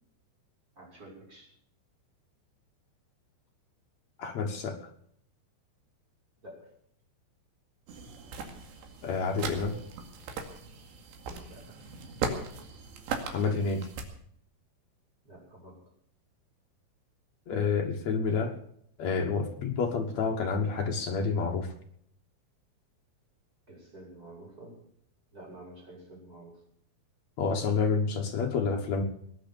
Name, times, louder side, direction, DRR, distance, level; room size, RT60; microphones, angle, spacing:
voice 1, 0.8-1.5 6.4-6.7 11.5-11.8 15.2-15.8 23.7-24.8 25.3-26.6, right 1 dB, 20° right, -1 dB, 6.4 m, -49 dB
voice 2, 4.2-4.9 9.0-9.8 13.2-13.9 17.5-18.6 19.0-21.7 27.4-29.0, left 5 dB, 75° left, 2 dB, 1.6 m, -29 dB
sound 1, 7.9-14.0, right 5 dB, 70° right, 4.2 m, -38 dB
20.5 x 9.7 x 6.9 m, 0.67 s
omnidirectional pair, 5.3 m